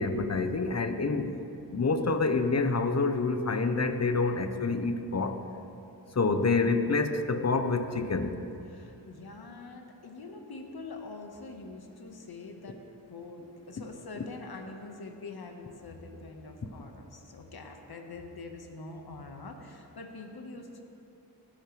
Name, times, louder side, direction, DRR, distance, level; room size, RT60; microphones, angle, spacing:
voice 1, 0.0-1.4 1.7-5.4 6.1-8.4, left 3 dB, 40° left, 8 dB, 1.0 m, -27 dB
voice 2, 8.7-12.8 13.1-20.8, left 3 dB, 65° left, 3 dB, 1.7 m, -44 dB
19.0 x 11.0 x 3.4 m, 2.9 s
cardioid pair, 60°, 41 cm